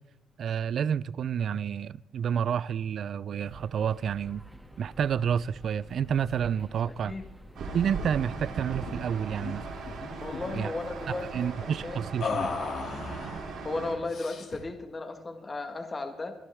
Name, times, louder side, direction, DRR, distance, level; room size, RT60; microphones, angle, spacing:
voice 1, 0.4-4.4 4.8-7.2 7.7-9.7 10.5-10.7 11.3-12.5, right 8 dB, 60° right, 0.4 m, -29 dB
sound 1, 3.4-11.5, equal, 5° right, 2.1 m, -48 dB
sound 2, 7.5-13.9, right 4 dB, 80° right, 4.7 m, -39 dB
sound 3, 8.9-9.1 9.3-9.5 9.9-10.6 12.2-13.4 14.1-14.7, left 4 dB, 60° left, 2.6 m, -35 dB
voice 2, 10.2-11.5 11.8-12.0 13.6-16.3, left 3 dB, 30° left, 1.7 m, -35 dB
22.0 x 11.5 x 3.5 m
cardioid pair, 90°, 0 cm